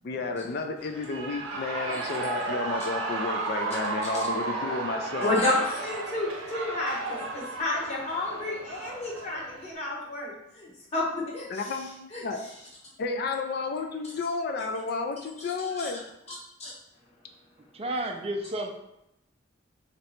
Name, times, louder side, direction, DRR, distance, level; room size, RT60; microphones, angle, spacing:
voice 1, 0.0-5.4 11.5-12.4 13.0-16.0, left 4 dB, 50° left, 4 dB, 0.3 m, -32 dB
Shout / Cheering, 0.8-9.7, right 3 dB, 75° right, 0.7 m, -33 dB
voice 2, 5.2-11.8 12.1-12.2 15.7-16.0 16.3-16.7, left 2 dB, 35° left, -5 dB, 1.0 m, -31 dB
voice 3, 17.6-18.7, right 1 dB, 30° right, 2 dB, 0.4 m, -32 dB
3.1 x 2.7 x 4.2 m, 0.84 s
head